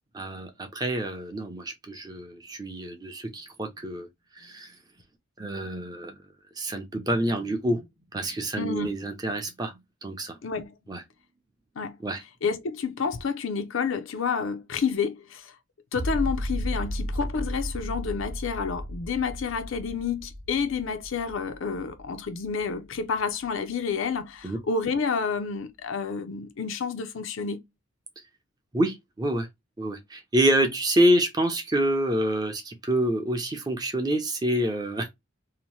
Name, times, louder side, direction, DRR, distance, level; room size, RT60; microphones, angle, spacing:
voice 1, 0.1-4.1 4.4-4.7 5.4-6.2 6.6-7.8 8.1-10.4 10.9-11.0 12.0-12.2 24.4-24.6 28.7-29.5 29.8-35.1, right 1 dB, 20° right, 0.5 m, -27 dB
voice 2, 8.6-9.0 10.4-10.8 11.8-12.0 12.4-15.6 15.9-27.6, left 5 dB, 70° left, 0.5 m, -29 dB
sound 1, 15.9-23.0 23.4-23.5, equal, 80° right, 0.9 m, -34 dB
2.8 x 2.1 x 3.0 m
head